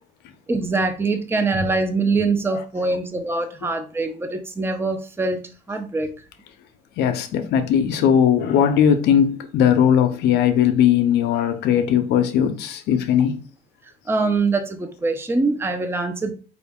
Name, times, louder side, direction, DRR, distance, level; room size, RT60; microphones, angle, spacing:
voice 1, 0.5-5.4 5.7-6.1 14.1-16.3, right 3 dB, 15° right, 0.6 m, -23 dB
voice 2, 7.0-13.4, left 8 dB, 80° left, 0.6 m, -18 dB
4.4 x 2.5 x 3.5 m
cardioid pair, 110°, 17 cm